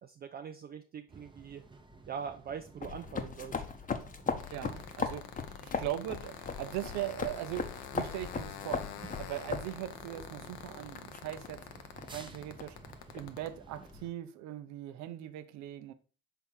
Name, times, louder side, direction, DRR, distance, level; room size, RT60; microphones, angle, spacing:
voice 1, 0.0-1.6 2.1-3.6, right 7 dB, 30° right, 0.4 m, -42 dB
sound 1, 1.1-14.1, right 3 dB, 15° right, 0.9 m, -54 dB
sound 2, 2.8-14.0, left 5 dB, 25° left, 0.9 m, -39 dB
sound 3, 4.4-13.5, left 10 dB, 85° left, 0.8 m, -46 dB
voice 2, 4.5-5.3 5.6-8.8 9.2-11.6 12.1-12.8 13.1-15.9, right 13 dB, 65° right, 0.7 m, -40 dB
5.8 x 3.6 x 4.5 m
supercardioid pair, 90°, 31 cm